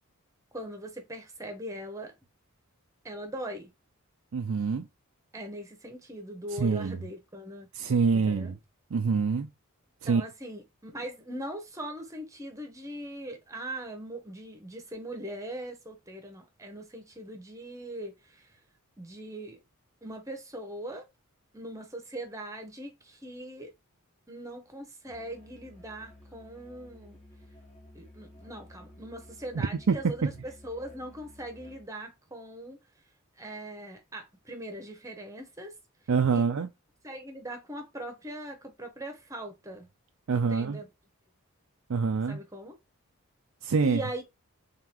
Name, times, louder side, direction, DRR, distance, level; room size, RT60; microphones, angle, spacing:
voice 1, 0.5-2.1 3.0-3.7 5.3-7.7 8.3-8.5 10.1-18.6 19.0-19.6 20.0-21.1 21.5-23.7 24.3-27.2 27.9-32.8 33.4-35.7 36.3-36.4 37.0-39.9 40.5-40.9 42.3-42.7 43.8-44.2, right 1 dB, 15° right, 1.0 m, -40 dB
voice 2, 4.3-4.9 6.5-7.0 7.7-8.6 8.9-9.5 10.0-10.2 29.5-30.3 36.1-36.7 40.3-40.8 41.9-42.4 43.6-44.0, right 5 dB, 65° right, 0.4 m, -26 dB
Musical instrument, 25.0-32.0, left 1 dB, 30° left, 1.5 m, -53 dB
3.8 x 3.6 x 2.9 m
head